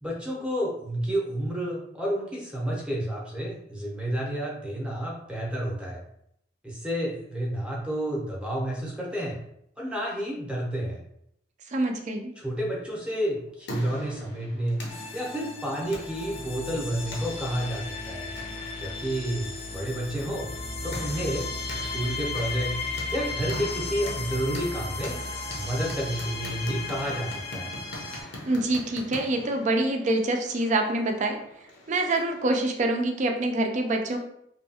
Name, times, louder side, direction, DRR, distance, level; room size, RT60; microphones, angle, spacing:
voice 1, 0.0-6.0 6.6-9.4 9.8-11.0 12.4-14.8 15.1-18.3 18.8-20.5 20.8-21.5 21.7-22.8 23.1-25.2 25.5-27.7, right 1 dB, 5° right, -3 dB, 0.7 m, -30 dB
voice 2, 11.7-12.3 28.5-31.4 31.9-34.2, right 2 dB, 40° right, 4 dB, 0.4 m, -25 dB
sound 1, 13.2-32.5, left 1 dB, 75° left, 0.6 m, -43 dB
sound 2, 14.9-28.2, left 3 dB, 30° left, 0.4 m, -35 dB
2.7 x 2.3 x 2.7 m, 0.73 s
head